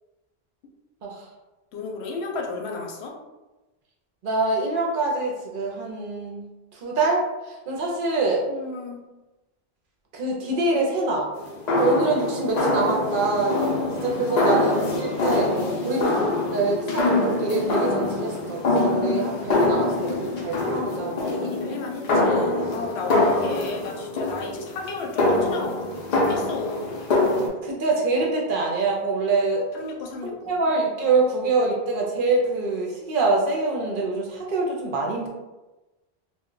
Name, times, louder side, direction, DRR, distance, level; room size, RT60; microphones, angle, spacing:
voice 1, 1.7-3.1 8.5-9.0 14.3-14.8 21.0-25.9 26.1-27.0 29.7-30.5, left 4 dB, 80° left, 0 dB, 0.8 m, -34 dB
voice 2, 4.2-6.5 6.7-8.4 10.1-11.3 11.8-13.7 14.0-15.5 15.8-21.8 27.6-29.6 30.5-35.3, right 3 dB, 60° right, -1 dB, 0.7 m, -25 dB
sound 1, 11.3-27.5, left 2 dB, 55° left, 0.5 m, -24 dB
2.2 x 2.1 x 3.7 m, 1.1 s
omnidirectional pair, 1.1 m